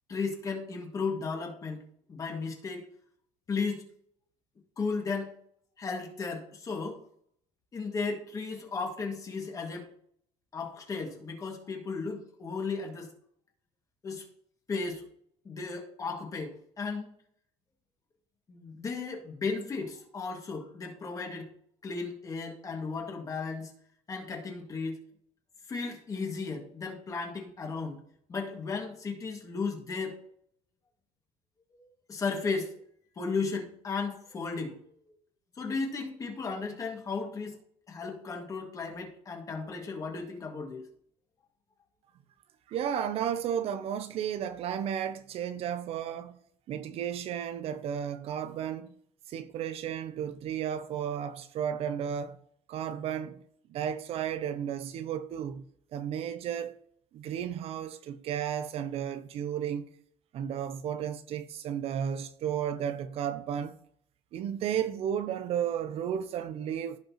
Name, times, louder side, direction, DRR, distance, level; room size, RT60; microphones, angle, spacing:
voice 1, 0.1-1.8 2.1-2.9 3.5-3.9 4.8-5.4 5.8-7.0 7.7-9.9 10.5-13.1 14.0-14.2 14.7-15.0 15.4-17.1 18.5-21.5 21.8-23.7 24.1-25.0 25.7-28.0 28.3-30.2 31.7-32.8 33.2-34.8 35.6-37.6 37.9-40.8, left 4 dB, 25° left, 2.0 m, -35 dB
voice 2, 42.7-46.3 46.7-48.9 49.3-52.4 52.7-53.4 53.7-55.6 55.9-56.7 57.1-59.9 60.3-63.7 64.3-67.0, right 9 dB, 50° right, 0.6 m, -33 dB
15.5 x 5.3 x 3.0 m
cardioid pair, 145°, 13 cm